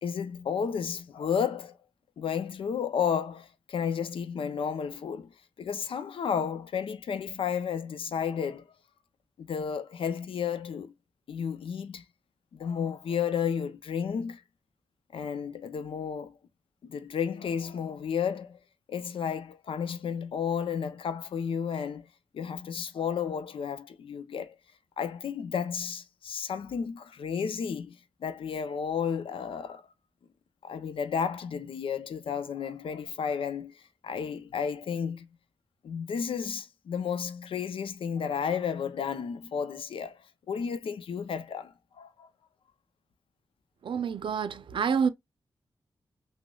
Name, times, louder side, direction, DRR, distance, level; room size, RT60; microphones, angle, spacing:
voice 1, 0.0-1.8 2.2-8.7 9.4-10.9 11.3-12.0 12.5-14.4 15.1-16.4 16.8-18.6 18.9-22.1 22.3-24.6 25.0-29.9 30.6-35.3 35.8-42.3, left 7 dB, 85° left, 0.5 m, -32 dB
voice 2, 43.8-45.1, right 6 dB, 70° right, 0.5 m, -28 dB
6.1 x 2.0 x 2.3 m
wide cardioid pair, 125°, 9 cm